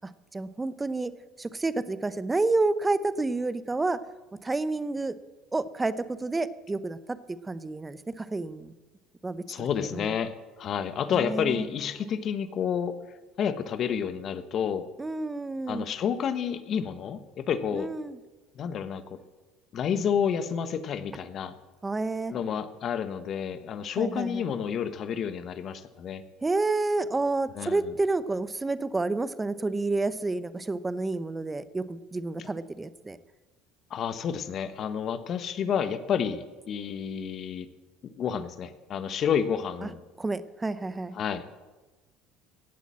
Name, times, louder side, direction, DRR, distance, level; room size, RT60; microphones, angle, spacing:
voice 1, 0.0-1.1 1.4-4.0 4.4-5.2 5.5-7.2 7.4-8.7 9.2-9.4 9.9-10.1 11.1-11.7 15.0-15.9 17.7-18.2 21.8-22.3 24.0-24.4 26.4-33.2 39.8-39.9 40.2-41.1, right 3 dB, 20° right, 15 dB, 0.8 m, -29 dB
voice 2, 9.5-12.9 13.4-14.9 15.7-17.9 18.5-19.2 19.7-21.5 22.3-26.2 27.5-27.9 33.9-37.7 38.0-40.0 41.1-41.5, left 7 dB, 50° left, 12 dB, 1.2 m, -30 dB
16.5 x 8.4 x 7.5 m, 1.2 s
hypercardioid pair, 75°, 0 cm